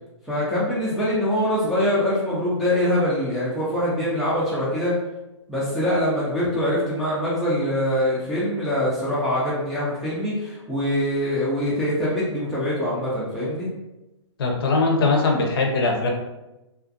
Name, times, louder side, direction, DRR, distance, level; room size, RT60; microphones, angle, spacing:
voice 1, 0.3-4.9 5.5-13.7, left 1 dB, ahead, -9 dB, 0.3 m, -24 dB
voice 2, 14.4-16.1, left 3 dB, 50° left, 1 dB, 0.6 m, -21 dB
2.4 x 2.3 x 2.5 m, 0.99 s
hypercardioid pair, 140°, 16 cm